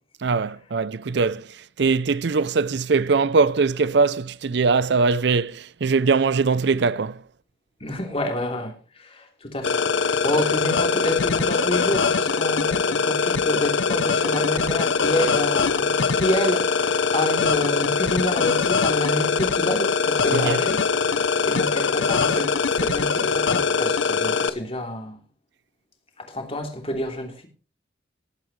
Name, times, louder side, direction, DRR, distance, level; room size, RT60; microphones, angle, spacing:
voice 1, 0.2-1.5 1.8-7.2 20.3-20.6, right 4 dB, 65° right, 0.5 m, -21 dB
voice 2, 7.8-8.7 9.0-9.8 10.2-20.8 21.4-25.2 26.2-27.5, left 1 dB, 30° left, 3.0 m, -28 dB
sound 1, 9.6-24.5, left 5 dB, 80° left, 0.8 m, -22 dB
19.0 x 8.9 x 3.2 m
head